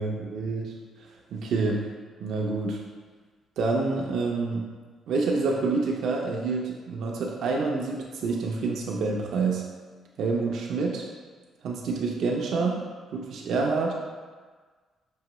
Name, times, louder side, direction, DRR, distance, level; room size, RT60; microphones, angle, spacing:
voice 1, 0.0-1.9 2.2-2.8 3.6-4.7 5.1-9.7 10.2-11.0 11.6-14.1, right 3 dB, 70° right, -2 dB, 0.5 m, -28 dB
5.5 x 2.9 x 3.0 m, 1.5 s
cardioid pair, 90°, 0 cm